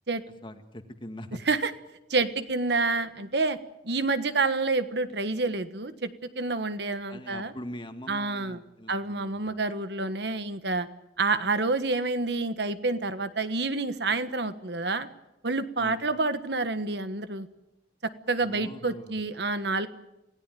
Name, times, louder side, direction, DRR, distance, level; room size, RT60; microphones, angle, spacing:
voice 1, 0.4-1.4 7.1-9.6 15.8-16.1 18.4-19.2, left 1 dB, 25° left, 7 dB, 1.8 m, -42 dB
voice 2, 2.1-3.6 3.8-7.5 8.1-8.6 8.9-10.9 11.2-15.1 15.4-17.5 18.0-19.9, right 3 dB, 65° right, 11 dB, 1.4 m, -28 dB
27.5 x 17.5 x 9.2 m, 0.93 s
head